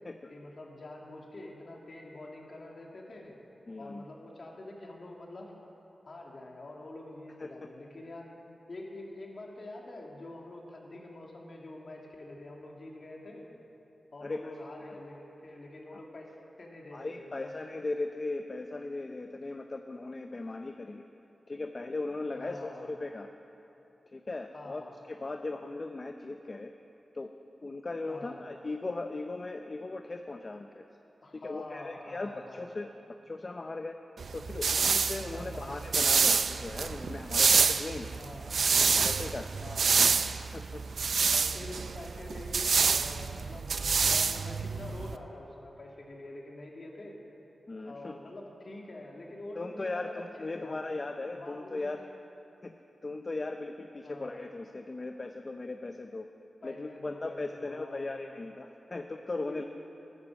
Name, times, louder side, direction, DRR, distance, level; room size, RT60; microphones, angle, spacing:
voice 1, 0.3-3.4 3.8-5.5 6.1-8.3 8.7-13.5 14.1-17.5 22.3-22.9 24.5-24.9 28.1-28.4 31.2-32.6 35.3-35.7 38.2-38.5 39.6-40.0 41.3-47.2 47.8-51.0 51.3-51.9 54.0-54.4 56.6-58.1 58.9-59.0 59.5-59.6, left 2 dB, 55° left, -1 dB, 2.4 m, -46 dB
voice 2, 3.7-4.0 7.4-7.5 14.2-14.5 16.9-21.0 21.5-23.3 24.1-24.8 25.1-26.7 27.1-27.3 27.6-30.8 31.3-32.9 33.2-34.0 34.3-38.1 39.0-39.5 40.5-40.8 47.7-48.1 49.6-52.0 52.6-52.7 53.0-56.3 56.6-59.6, left 2 dB, 40° left, 5 dB, 0.6 m, -38 dB
sound 1, 34.2-45.2, right 5 dB, 75° right, 0.4 m, -27 dB
13.5 x 11.0 x 6.4 m, 2.9 s
cardioid pair, 65°, 0 cm